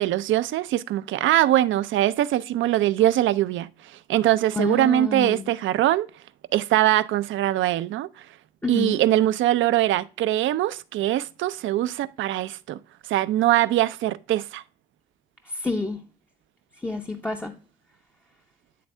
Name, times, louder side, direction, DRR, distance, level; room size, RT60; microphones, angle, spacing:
voice 1, 0.0-6.1 6.5-8.3 8.7-12.8 13.1-14.6, right 13 dB, 75° right, 0.4 m, -22 dB
voice 2, 4.6-5.5 8.6-9.0 15.5-16.0 16.8-17.5, left 3 dB, 10° left, 0.6 m, -28 dB
9.3 x 3.5 x 3.2 m
cardioid pair, 90°, 20 cm